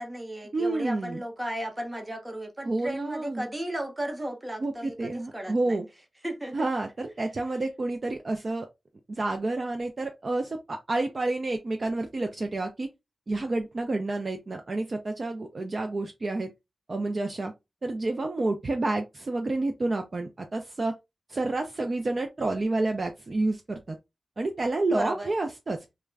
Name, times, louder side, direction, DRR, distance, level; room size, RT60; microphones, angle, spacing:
voice 1, 0.0-5.8 6.2-6.6 24.9-25.3, right 1 dB, 15° right, 0.8 m, -35 dB
voice 2, 0.5-1.2 2.6-3.5 4.6-5.8 6.5-8.7 9.1-12.9 13.3-16.5 16.9-17.5 17.8-20.9 21.3-24.0 24.4-25.8, right 2 dB, 40° right, 0.4 m, -29 dB
2.3 x 2.1 x 3.3 m
wide cardioid pair, 105°, 0 cm